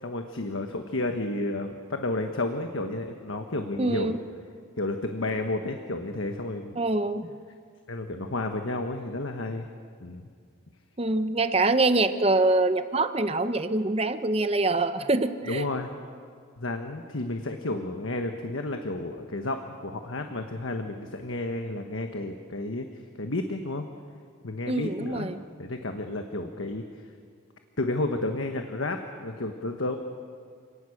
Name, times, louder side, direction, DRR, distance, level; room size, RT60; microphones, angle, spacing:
voice 1, 0.0-4.2 4.8-6.8 7.9-9.7 10.0-10.3 15.4-15.9 16.6-22.8 23.2-23.9 24.4-25.3 25.6-26.8 27.8-30.0, left 2 dB, 80° left, 5 dB, 1.3 m, -31 dB
voice 2, 3.8-4.2 6.8-7.3 11.0-15.6 24.7-25.4, right 2 dB, 30° right, 10 dB, 0.8 m, -25 dB
28.5 x 18.5 x 6.5 m, 2.1 s
head